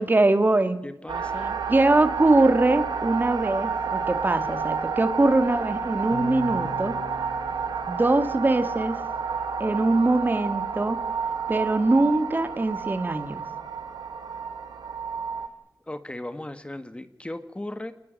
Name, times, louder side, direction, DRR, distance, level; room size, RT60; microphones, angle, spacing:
voice 1, 0.0-0.8 1.7-7.0 7.9-9.0 9.6-11.0 11.5-13.4, right 2 dB, 25° right, 10 dB, 2.1 m, -22 dB
voice 2, 0.8-1.6 15.9-17.9, left 1 dB, 15° left, 10 dB, 1.6 m, -37 dB
sound 1, 1.1-15.5, right 6 dB, 80° right, 2.5 m, -30 dB
sound 2, 6.1-8.7, left 5 dB, 40° left, 1.1 m, -40 dB
27.5 x 20.0 x 7.7 m, 0.82 s
wide cardioid pair, 85°, 7 cm